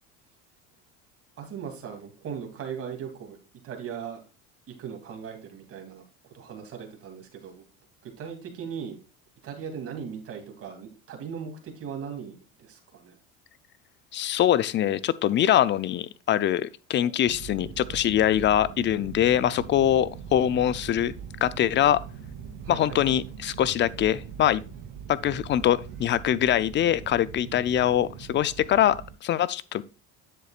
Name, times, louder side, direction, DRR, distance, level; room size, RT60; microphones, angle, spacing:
voice 1, 1.4-3.4 3.6-4.2 4.7-7.6 8.0-9.0 9.4-13.2 17.0-17.1 22.6-23.1, right 7 dB, 45° right, 2.8 m, -38 dB
voice 2, 14.1-21.1 21.4-22.0 22.7-24.6 25.1-29.8, left 11 dB, 35° left, 0.6 m, -23 dB
sound 1, 17.2-29.1, right 7 dB, 80° right, 2.3 m, -41 dB
10.0 x 7.7 x 2.4 m
supercardioid pair, 115°, 32 cm